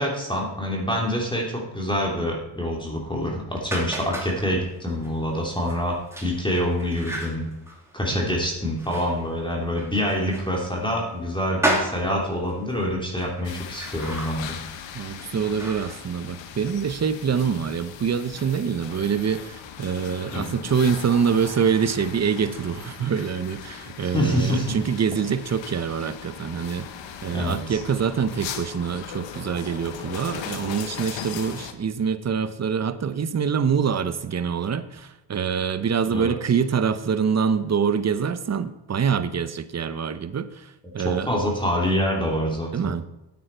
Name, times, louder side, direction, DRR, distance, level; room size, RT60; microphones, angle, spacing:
voice 1, 0.0-7.5 7.9-14.6 20.3-20.5 24.0-24.7 27.3-27.8 36.1-36.4 41.0-42.9, equal, 10° left, -2 dB, 2.9 m, -26 dB
sound 1, 3.7-16.7, right 1 dB, 5° right, 2.8 m, -34 dB
sound 2, 13.4-31.7, left 8 dB, 85° left, 1.1 m, -38 dB
voice 2, 14.9-26.9 27.2-40.7 40.9-41.3 42.7-43.0, right 6 dB, 35° right, 13 dB, 0.8 m, -25 dB
9.5 x 8.8 x 4.5 m, 0.97 s
cardioid pair, 70°, 44 cm